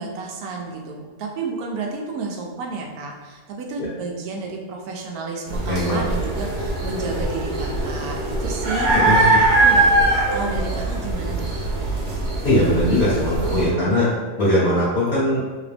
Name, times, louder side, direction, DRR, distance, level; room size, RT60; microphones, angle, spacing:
voice 1, 0.0-11.7, right 3 dB, 85° right, 1 dB, 1.1 m, -31 dB
sound 1, 5.5-13.7, right 2 dB, 60° right, 1.0 m, -21 dB
voice 2, 5.6-6.0 8.9-9.4 12.4-14.1 14.4-15.4, left 1 dB, 45° left, -9 dB, 1.0 m, -20 dB
3.0 x 2.9 x 3.3 m, 1.4 s
omnidirectional pair, 1.6 m